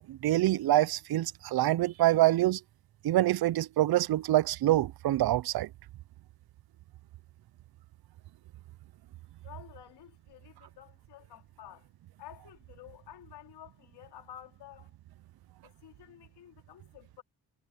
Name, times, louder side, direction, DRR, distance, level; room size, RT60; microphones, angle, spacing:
voice 1, 0.0-2.6 3.0-5.7, right 15 dB, 65° right, 0.7 m, -26 dB
voice 2, 9.4-11.9 12.2-15.0 15.6-17.2, left 12 dB, 85° left, 3.6 m, -51 dB
cardioid pair, 60°, 39 cm